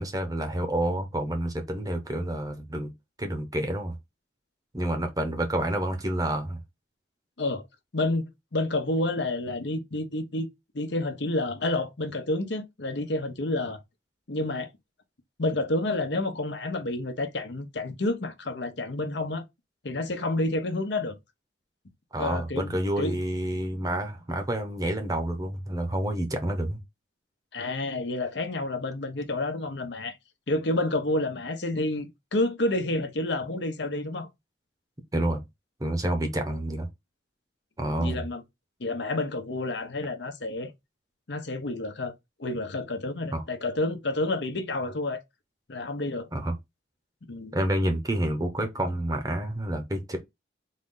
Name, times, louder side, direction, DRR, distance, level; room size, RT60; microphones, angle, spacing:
voice 1, 0.0-2.9 3.2-3.9 4.7-6.6 22.1-26.8 35.1-35.4 35.8-36.9 37.8-38.3 43.3-43.4 46.3-46.5 47.5-50.2, right 1 dB, 20° right, 0.9 m, -28 dB
voice 2, 7.9-10.5 10.7-13.8 14.3-14.7 15.4-19.4 19.8-21.1 22.2-23.2 27.5-30.2 30.5-34.3 37.8-38.4 38.8-40.7 41.3-42.1 42.4-45.2 45.7-46.3 47.3-47.5, left 2 dB, 65° left, 0.9 m, -29 dB
4.1 x 2.7 x 3.7 m
head